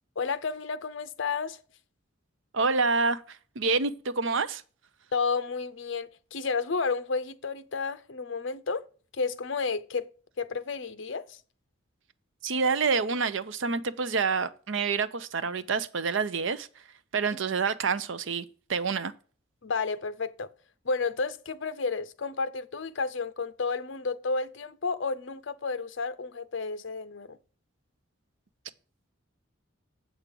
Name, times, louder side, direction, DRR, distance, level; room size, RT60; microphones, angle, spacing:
voice 1, 0.2-1.6 5.1-8.9 9.2-10.1 10.4-11.4 19.6-20.5 20.9-27.4, left 4 dB, 60° left, 0.6 m, -31 dB
voice 2, 2.5-4.6 12.4-16.7 17.1-18.4 18.7-19.1, right 4 dB, 65° right, 0.6 m, -27 dB
8.0 x 6.0 x 5.2 m
head